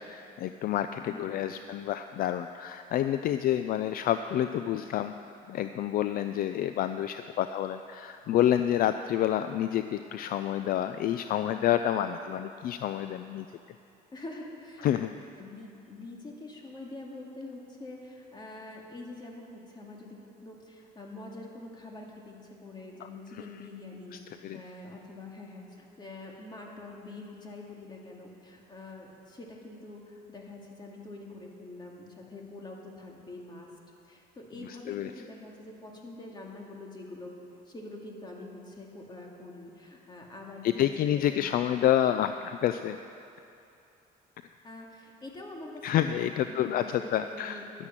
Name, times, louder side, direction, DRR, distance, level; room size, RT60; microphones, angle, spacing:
voice 1, 0.0-5.1 5.5-13.5 14.8-15.1 24.4-24.6 34.6-35.1 40.6-43.0 45.8-47.6, left 11 dB, 60° left, 10 dB, 0.4 m, -28 dB
voice 2, 1.0-1.8 14.1-15.0 15.4-33.7 34.0-37.3 37.7-41.5 44.6-47.6, left 2 dB, 25° left, -1 dB, 2.3 m, -45 dB
11.5 x 9.9 x 7.4 m, 2.7 s
cardioid pair, 110°, 17 cm